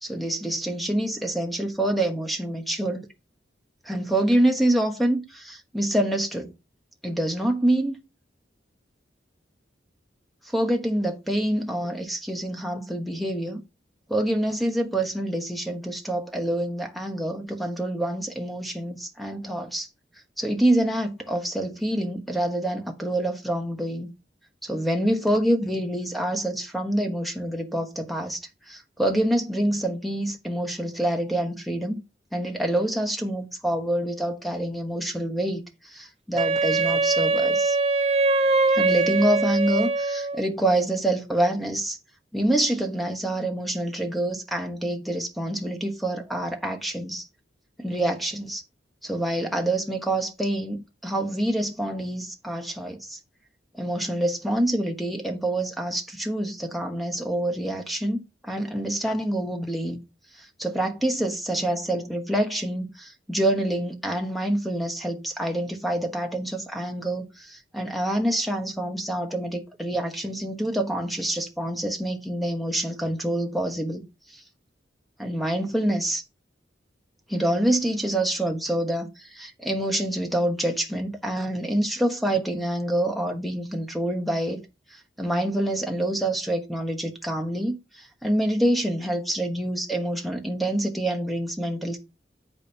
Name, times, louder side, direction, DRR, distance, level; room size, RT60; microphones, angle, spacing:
voice 1, 0.0-3.1 3.9-6.5 7.0-8.0 10.5-13.6 14.1-19.9 20.4-24.1 24.6-28.4 28.7-32.0 32.3-37.8 38.7-42.0 42.3-47.2 47.8-48.6 49.0-53.2 53.8-60.0 60.4-74.0 74.3-74.4 75.2-76.2 77.3-79.1 79.3-84.6 85.2-87.8 88.2-92.0, right 1 dB, ahead, 1.1 m, -26 dB
Wind instrument woodwind instrument, 36.4-40.5, right 3 dB, 35° right, 0.5 m, -22 dB
7.9 x 5.3 x 4.3 m
head